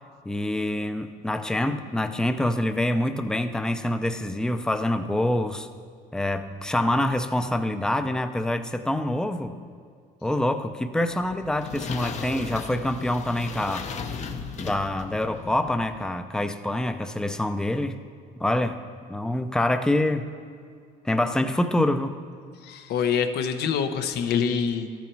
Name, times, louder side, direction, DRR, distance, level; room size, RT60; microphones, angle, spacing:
voice 1, 0.3-5.7 6.1-9.5 10.2-13.9 14.6-18.0 18.4-18.8 19.1-20.3 21.0-22.2, left 1 dB, 5° left, 9 dB, 0.5 m, -26 dB
sound 1, 11.1-16.1, left 5 dB, 45° left, 0.7 m, -36 dB
voice 2, 22.6-25.0, left 7 dB, 75° left, 8 dB, 0.8 m, -25 dB
13.5 x 7.3 x 4.5 m, 2.2 s
cardioid pair, 110°, 17 cm